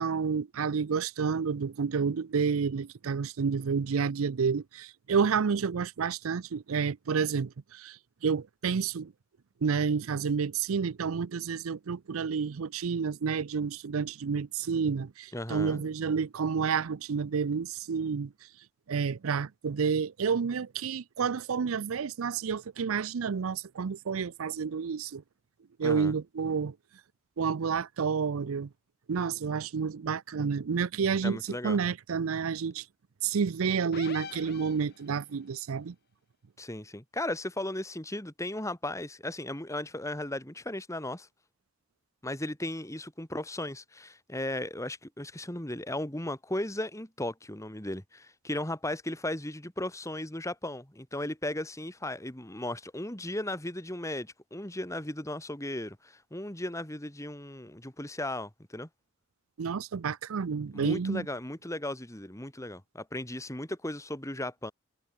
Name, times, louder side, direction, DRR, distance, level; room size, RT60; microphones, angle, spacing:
voice 1, 0.0-9.1 9.6-18.3 18.9-25.2 25.8-26.7 27.4-28.7 29.1-32.8 33.2-35.9 59.6-61.3, right 6 dB, 80° right, 0.5 m, -30 dB
voice 2, 15.3-15.9 25.8-26.1 31.2-31.8 36.6-41.3 42.2-58.9 60.7-64.7, left 1 dB, 15° left, 2.5 m, -36 dB
sound 1, 33.9-35.3, left 5 dB, 50° left, 1.7 m, -43 dB
head